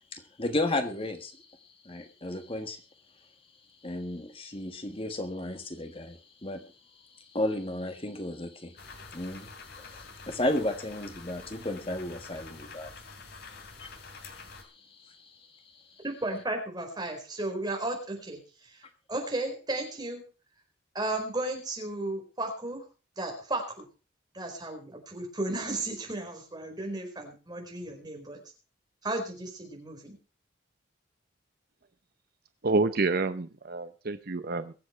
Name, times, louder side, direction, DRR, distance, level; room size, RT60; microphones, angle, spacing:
voice 1, 0.1-2.8 3.8-13.0 13.4-14.0 14.3-16.0, left 1 dB, 30° left, 1.5 m, -34 dB
sound 1, 8.8-14.6, left 4 dB, 60° left, 3.1 m, -47 dB
voice 2, 16.0-20.2 20.9-22.8 23.2-23.9 24.3-28.4 29.0-30.2, right 2 dB, 20° right, 4.8 m, -34 dB
voice 3, 32.6-34.7, right 3 dB, 55° right, 0.8 m, -28 dB
23.0 x 7.7 x 4.5 m
head